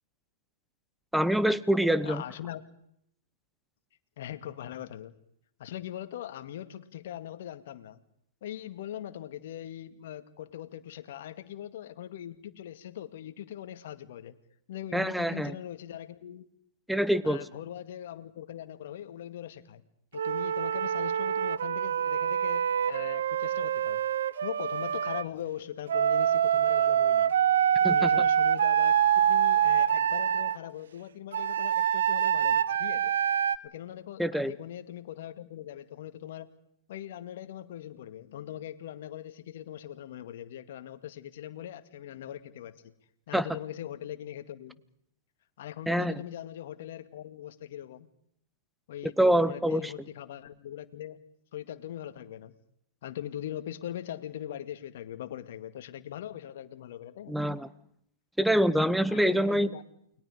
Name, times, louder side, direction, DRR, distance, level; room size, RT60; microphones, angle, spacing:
voice 1, 1.1-2.2 14.9-15.5 16.9-17.4 27.8-28.1 34.2-34.5 43.3-43.4 45.9-46.1 49.2-49.9 57.3-57.7 58.4-59.7, equal, ahead, 16 dB, 1.0 m, -25 dB
voice 2, 2.0-2.6 4.2-5.1 5.6-8.0 8.4-14.4 14.7-16.5 17.2-19.8 20.1-24.0 24.4-27.3 27.9-33.1 33.6-36.5 36.9-42.9 43.3-44.8 45.6-48.1 48.9-51.2 51.5-52.5 53.0-57.4 59.1-59.8, left 11 dB, 60° left, 9 dB, 2.0 m, -41 dB
Wind instrument woodwind instrument, 20.2-25.2 25.9-30.6 31.3-33.6, right 9 dB, 70° right, 0.9 m, -25 dB
29.5 x 21.5 x 5.0 m, 0.71 s
hypercardioid pair, 115°, 0 cm